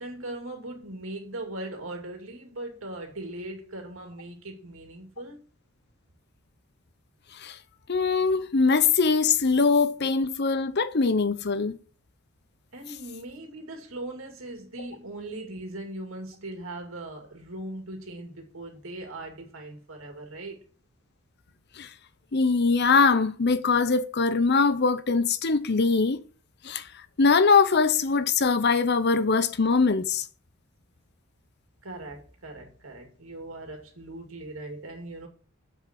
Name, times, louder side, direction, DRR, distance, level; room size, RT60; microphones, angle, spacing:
voice 1, 0.0-5.4 12.7-20.7 31.8-35.3, right 2 dB, 75° right, 2.5 m, -39 dB
voice 2, 7.9-11.8 21.8-21.9 22.3-26.2 26.6-26.9 27.2-30.2, left 4 dB, 50° left, 0.8 m, -22 dB
7.7 x 6.5 x 4.5 m
head